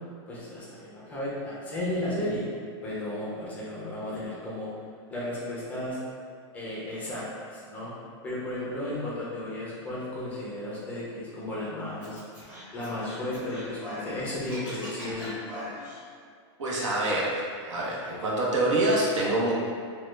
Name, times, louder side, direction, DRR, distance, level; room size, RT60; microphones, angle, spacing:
voice 1, 0.3-2.4 2.8-4.7 5.1-6.0 6.5-7.9 8.2-12.2 12.7-15.4, left 1 dB, 10° left, -7 dB, 0.4 m, -34 dB
Scratching (performance technique), 12.0-14.1 14.4-16.0, left 1 dB, 10° right, 0.8 m, -41 dB
voice 2, 16.6-19.5, right 1 dB, 85° right, -4 dB, 0.8 m, -26 dB
3.0 x 2.2 x 3.1 m, 2.1 s
supercardioid pair, 165°, 15 cm